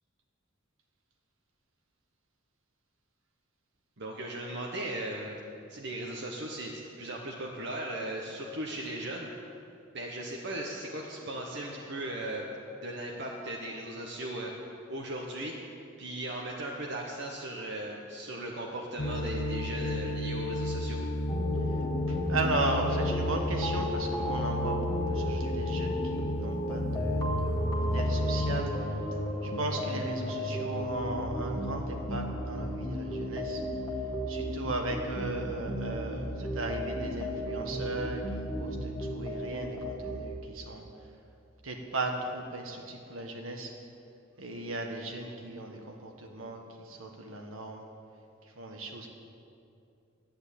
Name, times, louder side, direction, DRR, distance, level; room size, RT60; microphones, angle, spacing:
voice 1, 4.0-5.4 5.7-9.3 9.9-12.5 12.8-14.5 14.9-15.5 16.0-21.0, right 1 dB, 60° right, -1 dB, 1.2 m, -37 dB
sound 1, 19.0-28.6, left 1 dB, 45° left, 0.8 m, -32 dB
sound 2, 21.3-40.2, equal, 20° left, 1.6 m, -35 dB
voice 2, 22.1-29.1 29.4-33.6 34.3-40.9 41.6-43.8 44.4-47.9 48.4-49.1, right 2 dB, 75° right, 2 dB, 1.7 m, -36 dB
10.5 x 9.6 x 8.5 m, 2.6 s
head